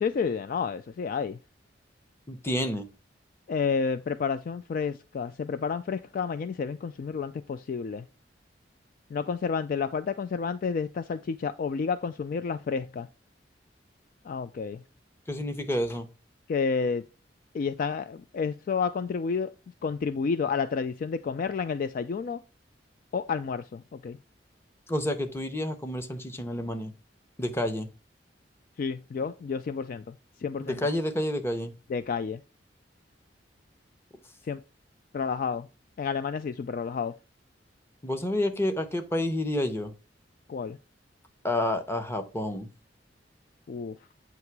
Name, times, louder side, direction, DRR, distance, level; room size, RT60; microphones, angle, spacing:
voice 1, 0.0-1.4 3.5-8.0 9.1-13.1 14.3-14.8 16.5-17.0 17.5-19.5 19.8-22.4 23.1-24.2 28.8-30.1 30.4-30.8 31.9-32.4 34.5-34.6 35.1-35.7 36.0-37.1 40.5-40.8 43.7-44.0, left 5 dB, 50° left, 0.3 m, -30 dB
voice 2, 2.3-2.9 15.3-16.1 24.9-26.9 27.4-27.9 30.6-31.7 38.0-39.9 41.4-42.7, left 1 dB, 15° left, 0.8 m, -29 dB
8.1 x 2.9 x 4.6 m
head